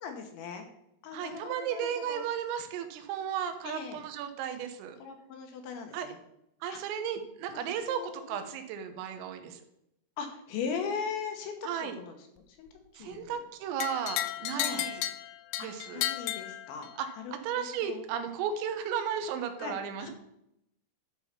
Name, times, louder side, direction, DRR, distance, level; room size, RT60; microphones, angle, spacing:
voice 1, 0.0-0.7 1.0-2.2 3.6-4.0 5.0-6.2 6.7-6.8 7.5-8.4 10.2-12.2 12.6-12.7 12.9-13.4 14.5-14.9 15.6-15.7 15.9-16.9 17.2-18.0 19.6-20.1, left 6 dB, 75° left, 4 dB, 3.1 m, -39 dB
voice 2, 1.1-5.0 5.9-6.1 6.6-9.6 11.6-12.0 13.0-15.0 15.6-16.1 17.0-17.1 17.4-20.1, right 8 dB, 85° right, 8 dB, 3.6 m, -34 dB
sound 1, 13.8-17.2, left 13 dB, 90° left, 3.3 m, -34 dB
12.0 x 4.7 x 5.9 m, 0.80 s
omnidirectional pair, 5.9 m